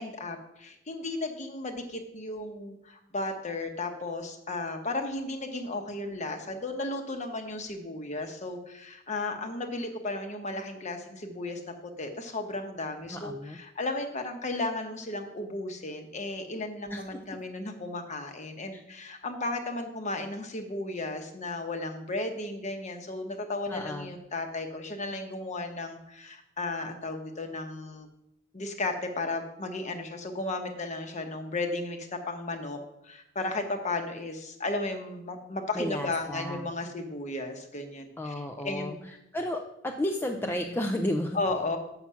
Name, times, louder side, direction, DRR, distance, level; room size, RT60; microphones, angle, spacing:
voice 1, 0.0-11.6 12.0-28.1 28.5-39.0 40.4-40.8 41.3-41.8, left 2 dB, 35° left, 5 dB, 1.0 m, -34 dB
voice 2, 13.1-13.6 16.9-17.0 18.7-18.8 23.7-24.2 35.8-36.6 38.2-38.9 39.3-41.4, left 1 dB, 10° left, 3 dB, 0.4 m, -32 dB
7.4 x 5.9 x 5.6 m, 0.84 s
head